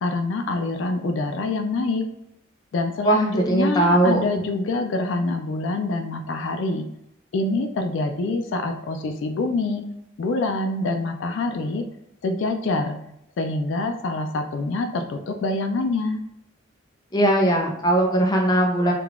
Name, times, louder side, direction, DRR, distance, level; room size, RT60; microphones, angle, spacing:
voice 1, 0.0-2.1 2.7-6.9 7.3-9.9 10.2-11.9 12.2-13.0 13.4-16.2, left 2 dB, 75° left, 6 dB, 0.4 m, -25 dB
voice 2, 3.0-4.2 17.1-18.9, right 1 dB, 20° left, 0 dB, 0.5 m, -19 dB
3.7 x 2.3 x 3.5 m, 0.76 s
head